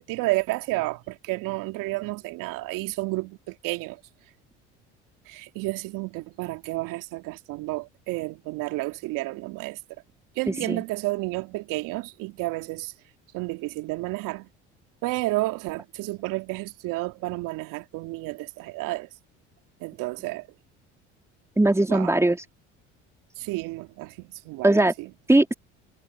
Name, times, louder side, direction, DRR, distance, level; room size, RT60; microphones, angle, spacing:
voice 1, 0.0-4.0 5.3-9.8 10.4-12.9 13.3-14.5 15.0-19.1 19.8-20.5 21.9-22.1 23.4-25.1, right 21 dB, 65° right, 2.5 m, -31 dB
voice 2, 10.5-10.8 21.6-22.4 24.6-24.9 25.3-25.5, right 2 dB, 10° right, 3.2 m, -20 dB
hypercardioid pair, 65°, 34 cm